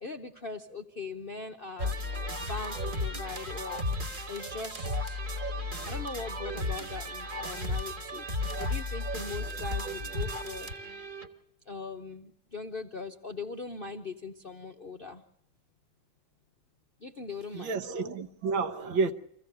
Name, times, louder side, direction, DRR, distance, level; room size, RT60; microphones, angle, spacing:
voice 1, 0.0-2.0 2.4-3.8 4.3-5.2 5.9-8.3 8.6-10.7 11.7-15.2 17.0-17.8, left 4 dB, 50° left, 0.6 m, -40 dB
sound 1, 1.8-11.3, left 1 dB, 30° right, 1.5 m, -34 dB
voice 2, 17.5-19.1, right 4 dB, 75° right, 1.9 m, -30 dB
25.0 x 15.5 x 6.7 m
omnidirectional pair, 2.1 m